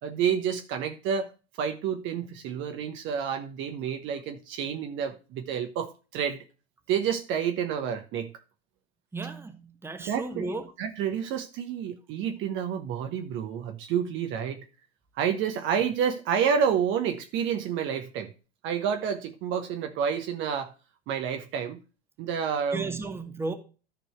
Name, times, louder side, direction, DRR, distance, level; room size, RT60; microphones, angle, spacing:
voice 1, 0.0-1.3 1.6-6.4 6.9-8.3 10.0-14.7 15.1-18.3 18.6-20.7 21.1-21.8 22.2-22.8, right 7 dB, 35° right, 1.2 m, -29 dB
voice 2, 9.1-10.7 22.7-23.6, right 3 dB, 5° right, 1.4 m, -34 dB
13.5 x 4.6 x 4.5 m
figure-of-eight pair, 85°, 32 cm